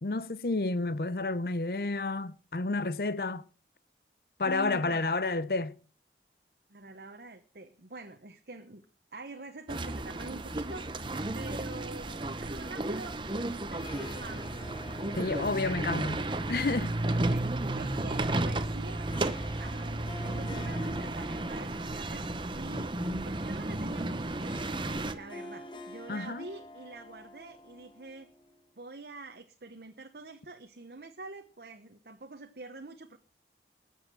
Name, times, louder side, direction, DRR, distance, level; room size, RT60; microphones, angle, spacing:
voice 1, 0.0-3.4 4.4-5.8 15.1-16.9 26.1-26.5, left 3 dB, 55° left, 0.7 m, -30 dB
voice 2, 4.4-5.1 6.7-8.8 9.1-13.2 13.7-14.5 17.1-19.1 19.6-22.3 22.5-23.0 23.3-24.5 25.1-28.3 28.8-33.2, right 3 dB, 60° right, 1.0 m, -46 dB
sound 1, 9.7-25.1, right 2 dB, 25° right, 0.9 m, -33 dB
Harp, 13.4-28.7, left 1 dB, 25° left, 1.5 m, -49 dB
13.5 x 7.4 x 7.6 m
head